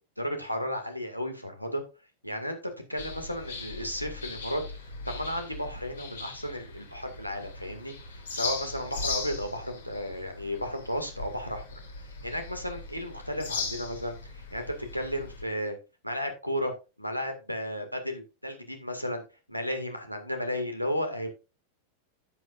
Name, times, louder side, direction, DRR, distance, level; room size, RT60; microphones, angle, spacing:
voice 1, 0.2-1.8 2.2-2.6 2.9-4.6 5.1-11.6 12.2-14.6 14.9-15.8 16.0-16.7 17.0-19.2 19.5-21.3, equal, 90° left, 5 dB, 2.0 m, -33 dB
sound 1, 3.0-15.4, left 3 dB, 70° left, 3.1 m, -39 dB
12.0 x 9.3 x 2.5 m, 0.28 s
figure-of-eight pair, 90°, 0 cm